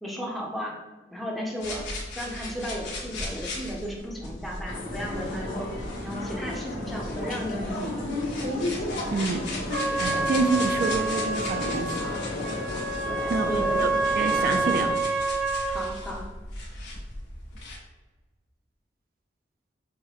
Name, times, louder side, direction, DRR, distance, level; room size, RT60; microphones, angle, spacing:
voice 1, 0.0-0.8 1.1-1.9 2.2-5.7 6.0-7.7 13.0-13.8 15.7-16.2, equal, ahead, -2 dB, 0.5 m, -34 dB
sound 1, 1.6-17.8, left 2 dB, 80° left, 1.1 m, -38 dB
sound 2, 4.6-14.8, left 1 dB, 50° left, 0.9 m, -33 dB
voice 2, 9.1-9.4 10.0-12.1 13.3-13.5 13.8-13.9 14.2-15.0, right 3 dB, 55° right, 6 dB, 0.3 m, -27 dB
Trumpet, 9.7-15.9, right 3 dB, 85° right, 1.0 m, -28 dB
5.6 x 2.1 x 2.9 m, 1.2 s
head